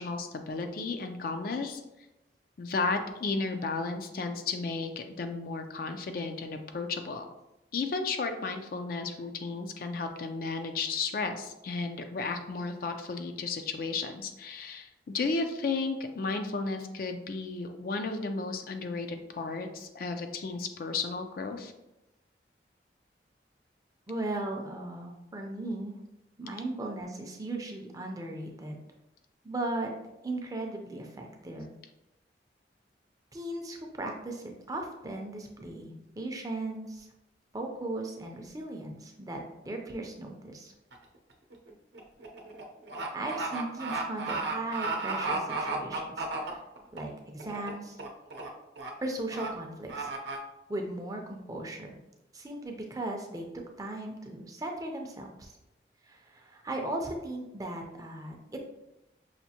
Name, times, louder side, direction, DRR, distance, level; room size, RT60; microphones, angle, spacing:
voice 1, 0.0-1.8 2.6-7.3 7.7-21.7, left 4 dB, 55° left, 6 dB, 0.4 m, -33 dB
voice 2, 24.1-26.0 26.4-28.8 29.4-29.9 30.2-31.8 33.3-37.1 37.5-39.4 39.6-40.7 43.1-46.6 46.9-48.0 49.0-50.4 50.7-52.0 52.3-53.4 53.8-55.6 56.0-58.6, right 2 dB, 20° right, 2 dB, 0.5 m, -37 dB
sound 1, 40.9-41.2 41.5-47.0 47.4-47.7 48.0-48.5 48.8-48.9 49.3-49.5 49.9-50.4, right 3 dB, 80° right, 0.7 m, -34 dB
5.7 x 2.5 x 2.8 m, 0.92 s
head